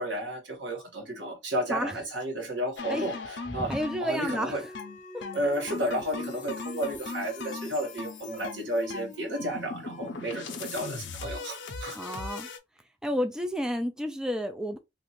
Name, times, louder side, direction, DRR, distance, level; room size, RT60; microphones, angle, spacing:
voice 1, 0.0-3.1 3.5-3.7 4.0-4.6 5.3-12.0, equal, 90° right, 1.3 m, -32 dB
sound 1, 2.8-12.6, left 4 dB, 90° left, 0.6 m, -39 dB
voice 2, 3.6-4.6 5.1-5.2 11.9-12.5 13.0-14.8, equal, 5° right, 0.3 m, -31 dB
sound 2, 4.4-11.6, left 1 dB, 45° left, 0.7 m, -47 dB
3.0 x 2.5 x 2.9 m
head